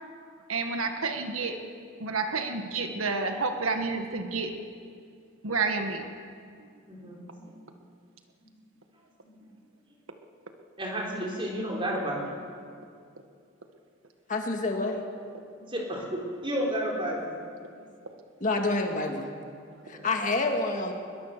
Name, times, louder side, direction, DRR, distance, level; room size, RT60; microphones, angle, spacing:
voice 1, 0.5-1.6 2.0-4.5 5.4-6.1, right 4 dB, 80° right, 5 dB, 1.6 m, -29 dB
voice 2, 6.9-7.5 9.2-9.5 10.8-12.4 15.7-17.3 17.7-17.8 19.9-20.1, equal, 25° right, -1 dB, 4.3 m, -32 dB
voice 3, 14.3-15.1 18.4-19.3 19.9-20.9, left 2 dB, 35° left, 3 dB, 1.9 m, -28 dB
22.0 x 21.5 x 6.7 m, 2.2 s
head